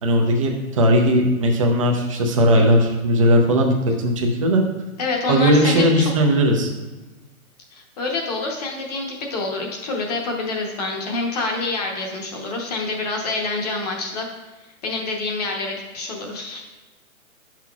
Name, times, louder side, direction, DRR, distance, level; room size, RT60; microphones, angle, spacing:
voice 1, 0.0-3.7 4.0-4.6 5.3-6.7, equal, 25° right, 1 dB, 0.5 m, -17 dB
voice 2, 5.0-6.1 7.7-14.3 14.8-16.6, left 3 dB, 30° left, 1 dB, 0.9 m, -27 dB
9.3 x 5.9 x 2.3 m, 1.2 s
hypercardioid pair, 165°, 43 cm